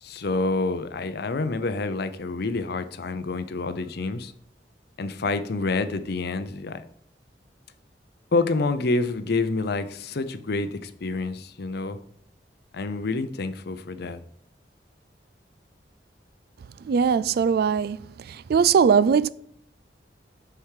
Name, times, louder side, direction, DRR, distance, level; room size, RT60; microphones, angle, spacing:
voice 1, 0.0-4.3 5.0-6.8 8.3-12.0 12.7-14.2, left 3 dB, 65° left, 0.6 m, -28 dB
voice 2, 16.9-18.0 18.5-19.3, right 6 dB, 60° right, 0.3 m, -19 dB
6.8 x 4.6 x 6.5 m
head